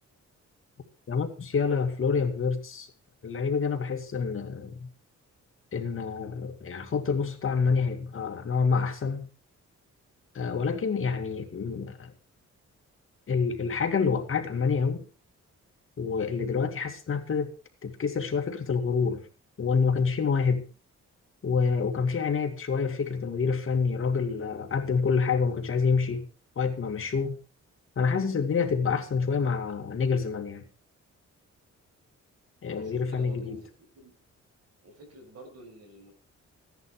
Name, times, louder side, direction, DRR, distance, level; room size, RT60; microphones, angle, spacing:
voice 1, 1.1-2.9 3.2-4.9 5.7-9.3 10.3-12.1 13.3-15.0 16.0-17.5 17.8-19.2 19.6-20.6 21.4-26.3 26.6-27.4 28.0-30.6 32.6-33.6, left 5 dB, 45° left, 5 dB, 2.3 m, -27 dB
voice 2, 32.7-33.7 33.9-34.1 34.8-36.1, right 1 dB, 60° right, 3 dB, 6.5 m, -49 dB
16.0 x 10.5 x 5.0 m, 0.34 s
wide cardioid pair, 145°, 29 cm